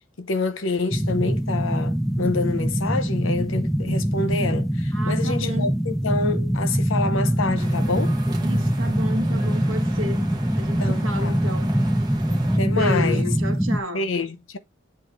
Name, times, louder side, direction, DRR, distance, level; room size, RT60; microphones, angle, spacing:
voice 1, 0.2-8.2 10.8-11.3 12.6-13.2 13.9-14.6, left 3 dB, 75° left, 0.8 m, -27 dB
sound 1, 0.9-13.8, equal, ahead, 0.3 m, -23 dB
voice 2, 4.9-5.7 8.4-10.3 10.5-11.8 12.6-14.1, left 1 dB, 80° right, 1.4 m, -32 dB
sound 2, 7.6-12.6, right 2 dB, 20° right, 1.1 m, -38 dB
7.9 x 2.8 x 5.2 m
head